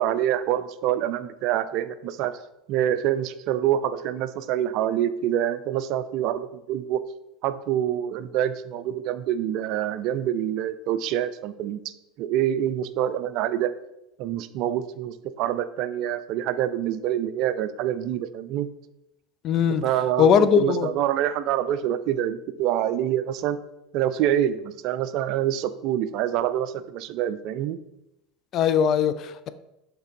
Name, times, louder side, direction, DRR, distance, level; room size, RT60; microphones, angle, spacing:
voice 1, 0.0-2.3 2.7-7.0 7.4-11.9 12.2-13.7 14.2-18.7 19.8-23.6 23.9-27.8, right 11 dB, 55° right, 0.3 m, -26 dB
voice 2, 19.4-19.8 20.2-20.9 28.5-29.5, left 7 dB, 50° left, 0.4 m, -20 dB
5.6 x 3.6 x 5.2 m
hypercardioid pair, 80°, 0 cm